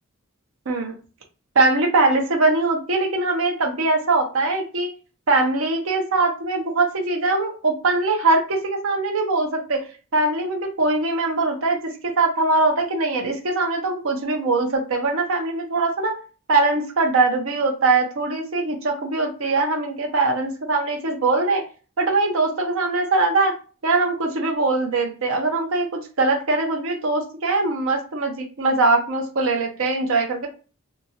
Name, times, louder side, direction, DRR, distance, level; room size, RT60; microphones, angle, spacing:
voice 1, 1.6-4.9 5.3-9.8 10.1-16.1 16.5-21.6 22.0-23.5 23.8-30.5, right 3 dB, 70° right, 2 dB, 0.6 m, -21 dB
2.8 x 2.3 x 2.8 m, 0.36 s
head